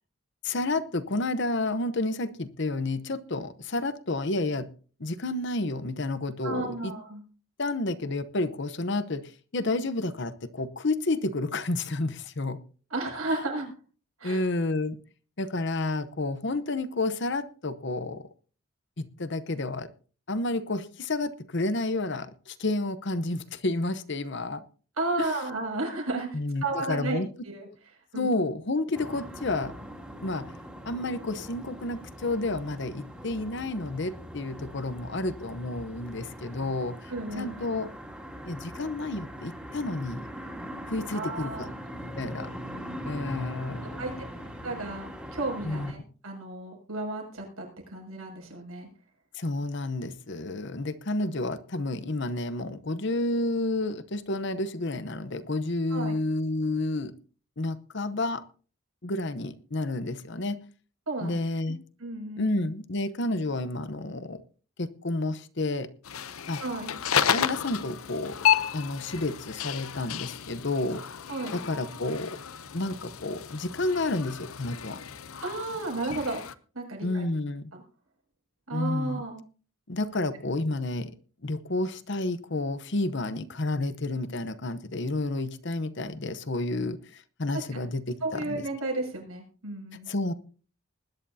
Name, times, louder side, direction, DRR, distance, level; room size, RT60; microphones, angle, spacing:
voice 1, 0.4-4.7 5.0-6.9 7.6-12.6 14.2-15.0 15.4-18.3 19.0-19.9 20.3-24.6 25.2-25.3 26.3-27.3 28.1-29.8 30.2-30.5 30.8-37.1 37.4-37.9 38.5-40.2 40.9-41.7 42.2-42.5 43.1-44.3 45.6-45.9 49.3-57.1 57.6-58.4 59.0-60.6 61.2-61.8 62.4-64.4 64.8-65.9 66.5-66.6 67.3-68.4 68.7-71.0 71.5-72.4 72.7-75.0 77.0-77.6 78.7-79.2 79.9-81.1 81.4-88.6 90.1-90.3, left 2 dB, 55° left, 0.9 m, -30 dB
voice 2, 6.4-7.2 12.9-13.7 14.2-14.5 25.0-27.7 28.1-28.3 37.1-37.7 41.1-41.7 44.0-44.1 44.6-48.9 55.9-56.1 61.1-61.4 62.0-62.5 66.6-67.0 71.3-71.6 75.4-76.4 76.7-77.2 77.7-77.8 78.7-79.4 87.7-87.9 88.2-90.1, right 2 dB, 85° right, 6.6 m, -33 dB
sound 1, 28.9-45.9, equal, 5° right, 2.3 m, -41 dB
sound 2, 66.0-76.5, left 9 dB, 80° left, 0.7 m, -32 dB
20.5 x 11.0 x 2.8 m
head